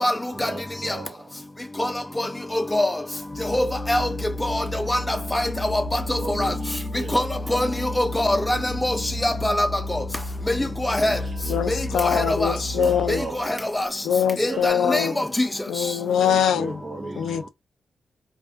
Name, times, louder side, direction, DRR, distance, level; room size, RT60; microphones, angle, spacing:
voice 1, 0.3-1.3 3.8-3.9 6.1-7.3 10.2-10.3 10.8-12.0 12.7-13.6 14.4-15.3 16.2-17.5, right 3 dB, 50° right, 0.4 m, -37 dB
Organ, 3.2-13.5, left 2 dB, 50° left, 0.7 m, -32 dB
voice 2, 3.5-4.1 4.5-4.6 4.9-5.0 5.3-5.4 6.4-6.5 7.1-7.2 7.5-7.7 8.0-8.9 9.2-9.7 10.9-11.1 12.3-12.4 14.4-15.0 15.4-15.5, left 1 dB, 15° left, 0.6 m, -22 dB
voice 3, 11.5-13.2 14.0-15.2 15.7-16.8 17.2-17.5, left 8 dB, 90° left, 0.4 m, -23 dB
2.5 x 2.4 x 2.4 m
cardioid pair, 60°, 0 cm